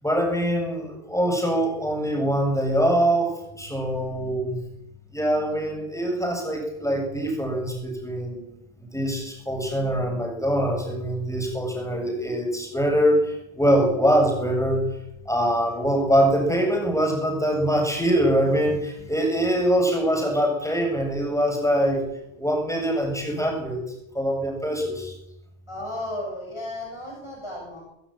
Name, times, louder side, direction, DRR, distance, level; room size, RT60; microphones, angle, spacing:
voice 1, 0.0-4.6 5.1-8.4 8.8-14.8 15.3-22.0 22.4-23.8 24.1-25.1, equal, 5° left, 2 dB, 7.6 m, -23 dB
voice 2, 25.7-27.8, left 1 dB, 30° left, -2 dB, 7.5 m, -34 dB
24.0 x 15.5 x 9.4 m, 0.82 s
omnidirectional pair, 1.0 m